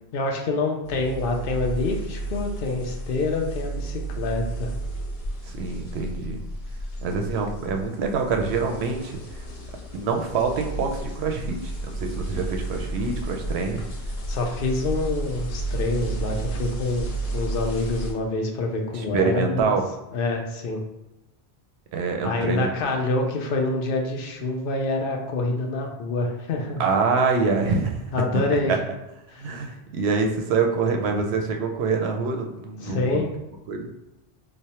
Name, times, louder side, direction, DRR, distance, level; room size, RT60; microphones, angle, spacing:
voice 1, 0.1-4.7 14.3-19.8 20.1-20.8 22.2-26.8 28.1-28.8 29.3-29.5 32.8-33.3, left 2 dB, 60° left, 2 dB, 0.7 m, -26 dB
sound 1, 0.8-18.1, right 2 dB, 80° left, 1.1 m, -32 dB
voice 2, 5.4-6.4 7.0-9.5 9.9-13.8 18.9-19.8 21.9-22.7 26.8-28.0 28.7-28.8 29.4-33.2 33.7-33.9, right 4 dB, 75° right, 4 dB, 0.8 m, -25 dB
3.1 x 2.0 x 4.1 m, 0.94 s
omnidirectional pair, 1.1 m